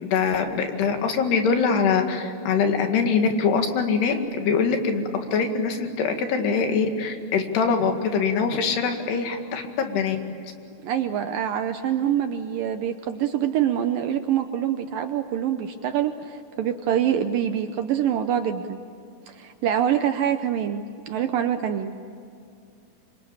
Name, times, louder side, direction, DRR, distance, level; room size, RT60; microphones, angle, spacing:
voice 1, 0.0-5.0 5.3-10.2, left 5 dB, 75° left, 5 dB, 4.0 m, -23 dB
voice 2, 10.8-18.8 19.3-21.9, right 9 dB, 80° right, 8 dB, 2.1 m, -25 dB
27.0 x 24.5 x 8.7 m, 2.4 s
omnidirectional pair, 4.8 m